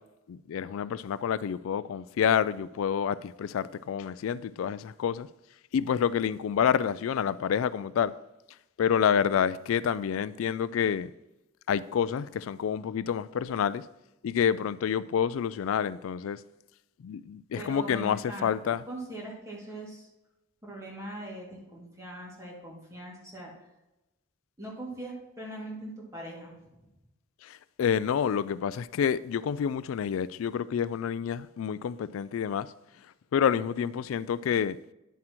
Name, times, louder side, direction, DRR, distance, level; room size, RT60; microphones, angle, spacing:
voice 1, 0.3-5.3 5.7-8.1 8.8-11.1 11.7-13.8 14.2-16.4 17.0-18.8 27.4-32.7 33.3-34.8, left 8 dB, 85° left, 0.3 m, -28 dB
voice 2, 17.6-20.1 20.6-23.5 24.6-26.7, right 1 dB, 15° right, 2.3 m, -41 dB
10.0 x 7.4 x 3.0 m
head